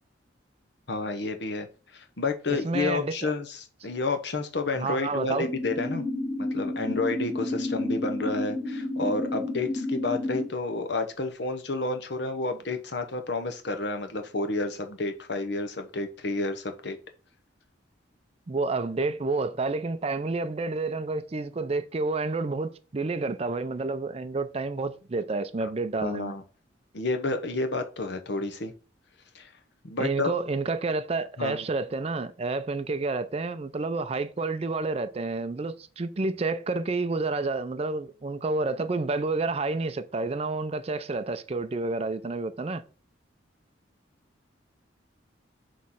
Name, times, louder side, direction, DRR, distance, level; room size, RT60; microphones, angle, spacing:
voice 1, 0.9-1.7 1.9-3.6 3.8-6.0 6.4-17.0 25.6-25.7 26.0-26.4 26.9-28.7 29.3-29.5 29.8-30.3 31.4-31.6, left 3 dB, 60° left, 0.9 m, -30 dB
voice 2, 2.5-3.3 4.8-5.5 18.5-26.3 30.0-42.8, right 3 dB, 30° right, 0.4 m, -29 dB
sound 1, 5.4-10.4, left 2 dB, ahead, 1.9 m, -31 dB
6.3 x 3.2 x 5.6 m
head